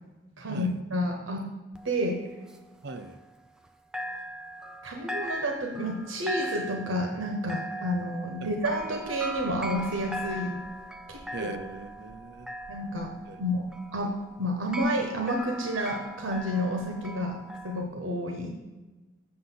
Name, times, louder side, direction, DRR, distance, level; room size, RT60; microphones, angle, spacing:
voice 1, 0.4-1.5 1.8-2.2 4.8-10.6 11.1-11.5 12.7-13.1 13.4-13.6 13.9-14.1 14.4-17.4 17.6-18.5, equal, 85° right, 2 dB, 1.1 m, -30 dB
sound 1, 1.7-3.7 3.9-17.8, equal, 5° right, 0.4 m, -39 dB
voice 2, 2.8-3.2 8.4-8.5 11.3-12.5 13.3-13.4, right 3 dB, 55° right, 9 dB, 0.6 m, -40 dB
7.7 x 6.7 x 3.9 m, 1.2 s
head